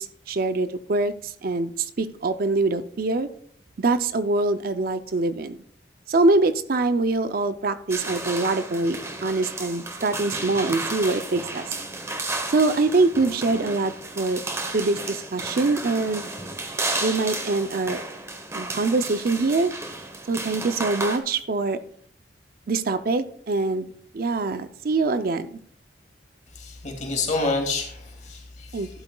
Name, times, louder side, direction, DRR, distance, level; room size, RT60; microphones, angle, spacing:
voice 1, 0.0-3.3 3.8-5.6 6.1-11.8 12.5-14.4 14.7-16.3 17.0-18.0 18.5-19.7 20.3-21.8 22.7-23.9 24.1-25.6 28.7-28.9, right 3 dB, 55° right, 11 dB, 0.5 m, -24 dB
sound 1, 7.9-21.2, right 2 dB, 15° right, 0.9 m, -33 dB
voice 2, 26.6-28.9, left 3 dB, 40° left, 1 dB, 2.4 m, -28 dB
12.0 x 11.5 x 2.3 m, 0.62 s
head